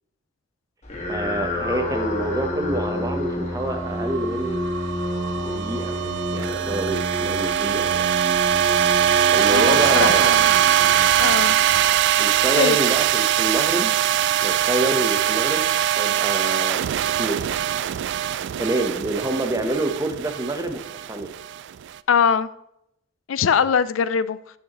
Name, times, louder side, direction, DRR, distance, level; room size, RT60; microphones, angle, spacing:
sound 1, 0.8-12.3, left 1 dB, 35° left, 1.7 m, -30 dB
voice 1, 1.1-4.7 5.4-6.0 6.3-8.1 9.3-10.3 12.2-13.9 14.4-15.7 16.0-16.9 17.2-17.5 18.6-21.3, right 2 dB, 20° right, 6 dB, 0.9 m, -27 dB
sound 2, 3.6-21.9, right 10 dB, 60° right, 0.3 m, -22 dB
voice 2, 9.5-10.5 11.2-11.6 12.6-12.8 22.1-22.5 23.3-24.4, left 7 dB, 80° left, 16 dB, 0.4 m, -21 dB
12.5 x 6.5 x 3.0 m, 0.80 s
head